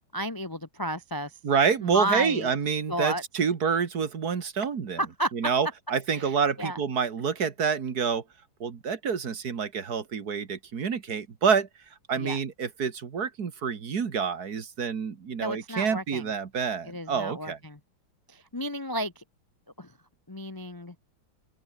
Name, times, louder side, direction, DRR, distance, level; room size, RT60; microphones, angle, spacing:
voice 1, 0.1-1.3 1.8-2.5 2.9-3.2 5.0-5.3 6.1-6.8 12.1-12.4 15.4-16.3 16.8-17.8 18.3-19.2 19.8-19.9 20.3-20.9, right 1 dB, 30° left, 0.3 m, -32 dB
voice 2, 1.4-5.0 5.3-8.2 8.6-11.7 12.1-17.6, right 6 dB, 50° right, 2.1 m, -27 dB
open air
omnidirectional pair, 2.3 m